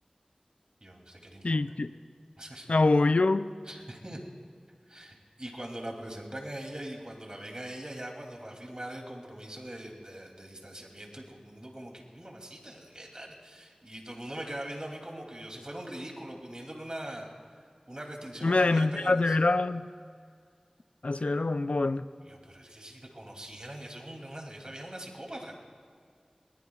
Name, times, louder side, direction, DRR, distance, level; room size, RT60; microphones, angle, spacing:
voice 1, 0.8-1.4 2.4-2.8 3.7-4.2 4.9-17.3 17.5-19.4 21.1-21.2 22.3-25.5, right 1 dB, 40° right, 2.8 m, -42 dB
voice 2, 1.4-1.9 2.7-3.5 18.4-19.9 21.0-22.1, left 3 dB, 70° left, 0.4 m, -25 dB
21.5 x 20.0 x 2.4 m
wide cardioid pair, 40°, 2 cm